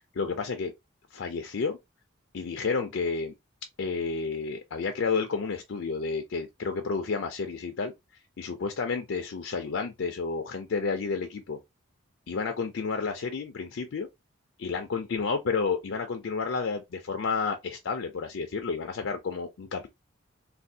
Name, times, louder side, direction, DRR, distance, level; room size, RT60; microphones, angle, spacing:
voice 1, 0.1-0.7 1.1-1.8 2.3-3.3 3.8-7.9 8.4-11.6 12.3-14.1 14.6-19.9, left 4 dB, 65° left, 0.4 m, -31 dB
3.3 x 2.3 x 2.7 m
head